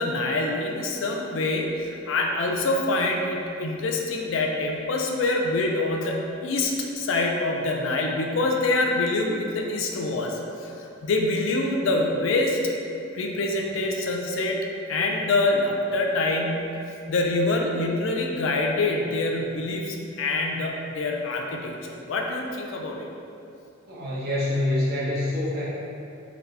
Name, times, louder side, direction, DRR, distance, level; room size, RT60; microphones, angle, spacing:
voice 1, 0.0-12.6 13.1-14.6 14.9-16.6 17.1-21.7 22.0-23.1, left 2 dB, 65° left, 1 dB, 0.4 m, -25 dB
voice 2, 23.9-25.6, left 1 dB, 50° right, -8 dB, 1.1 m, -26 dB
4.0 x 2.8 x 3.3 m, 2.6 s
head